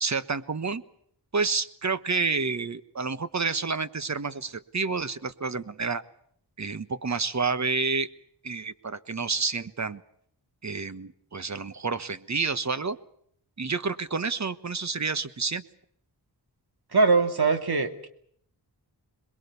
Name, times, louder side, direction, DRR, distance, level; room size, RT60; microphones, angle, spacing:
voice 1, 0.0-0.8 1.3-6.0 6.6-8.1 8.4-10.0 10.6-13.0 13.6-15.6, right 4 dB, 40° right, 13 dB, 1.3 m, -29 dB
voice 2, 16.9-18.1, right 4 dB, 65° right, 7 dB, 2.8 m, -22 dB
27.0 x 21.5 x 6.9 m, 0.66 s
wide cardioid pair, 115°, 41 cm